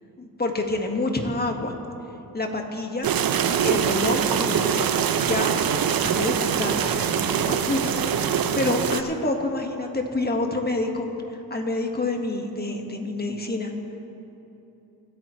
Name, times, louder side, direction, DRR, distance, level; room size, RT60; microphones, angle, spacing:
voice 1, 0.2-1.7 2.3-3.1 3.6-5.6 6.0-13.7, left 2 dB, 25° left, 3 dB, 1.7 m, -28 dB
sound 1, 3.0-9.0, right 8 dB, 65° right, 0.7 m, -23 dB
26.5 x 9.1 x 3.2 m, 3.0 s
cardioid pair, 80°, 37 cm